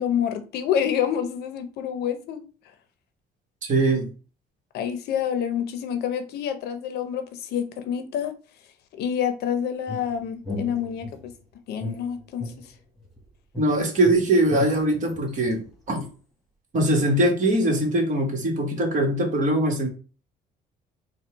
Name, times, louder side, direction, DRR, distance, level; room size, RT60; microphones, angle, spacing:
voice 1, 0.0-2.4 4.7-8.3 8.9-11.3 11.7-12.5, left 8 dB, 75° left, 9 dB, 0.7 m, -27 dB
voice 2, 3.6-4.1 13.6-15.6 15.9-16.0 16.7-19.9, right 1 dB, 50° right, 2 dB, 1.6 m, -22 dB
sound 1, 9.9-11.3 11.8-13.2 13.5-16.1, left 2 dB, ahead, 1.5 m, -36 dB
4.5 x 2.3 x 4.5 m, 0.37 s
cardioid pair, 110°, 17 cm